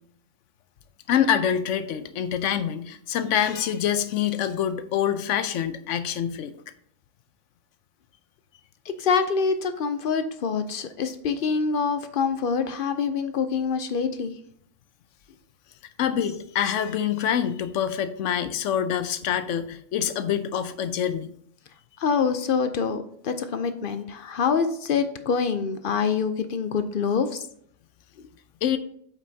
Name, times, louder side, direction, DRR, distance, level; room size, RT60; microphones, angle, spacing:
voice 1, 1.1-6.5 16.0-21.3 28.6-28.8, left 9 dB, 75° left, 11 dB, 0.9 m, -26 dB
voice 2, 8.9-14.3 22.0-27.4, left 5 dB, 55° left, 10 dB, 0.6 m, -25 dB
8.2 x 5.4 x 2.7 m, 0.66 s
omnidirectional pair, 1.3 m